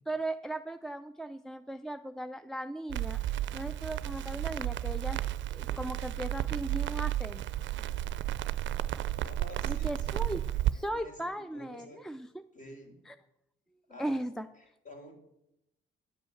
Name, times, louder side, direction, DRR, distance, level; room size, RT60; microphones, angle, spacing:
voice 1, 0.1-3.2 3.5-5.2 5.5-7.5 9.7-10.4 10.7-12.4 13.1-13.2 14.0-14.5, right 1 dB, ahead, 11 dB, 0.4 m, -37 dB
Crackle, 2.9-10.7, right 13 dB, 70° right, 0.5 m, -33 dB
voice 2, 5.6-6.0 9.2-10.2 10.5-11.2 11.5-12.1 12.5-13.0 13.9-14.2 14.5-15.2, left 1 dB, 40° left, 3 dB, 3.1 m, -50 dB
10.0 x 5.4 x 7.8 m, 0.84 s
cardioid pair, 90°, 20 cm